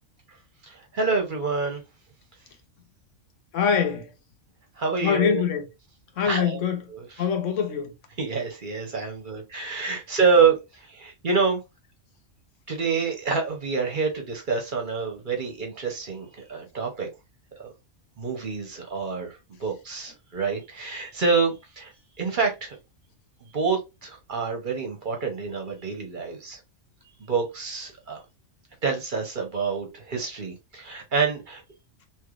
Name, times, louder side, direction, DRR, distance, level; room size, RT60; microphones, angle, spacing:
voice 1, 0.6-1.8 4.8-5.4 6.2-6.6 6.9-7.1 8.2-11.6 12.7-17.1 17.6-17.7 18.2-21.9 22.2-22.8 23.4-26.6 27.2-28.2 28.8-31.6, right 5 dB, 45° right, 0.9 m, -27 dB
voice 2, 3.5-4.1 5.0-5.7 6.2-6.8 7.2-7.9, left 7 dB, 80° left, 1.1 m, -24 dB
3.2 x 3.0 x 2.4 m
omnidirectional pair, 1.3 m